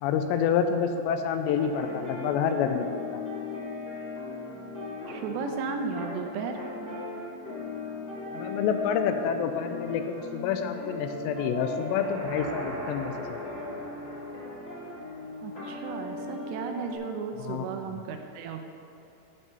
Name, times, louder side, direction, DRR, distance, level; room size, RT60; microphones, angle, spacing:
voice 1, 0.0-2.9 3.1-3.2 8.3-13.4 17.4-18.0, left 7 dB, 85° left, 7 dB, 2.7 m, -28 dB
sound 1, 1.3-16.9, left 3 dB, 25° left, 1.7 m, -38 dB
voice 2, 5.1-6.6 15.4-18.7, right 5 dB, 80° right, 5 dB, 2.8 m, -34 dB
sound 2, 11.7-15.8, right 1 dB, 50° right, 3.3 m, -41 dB
14.5 x 5.1 x 5.6 m, 2.7 s
omnidirectional pair, 5.2 m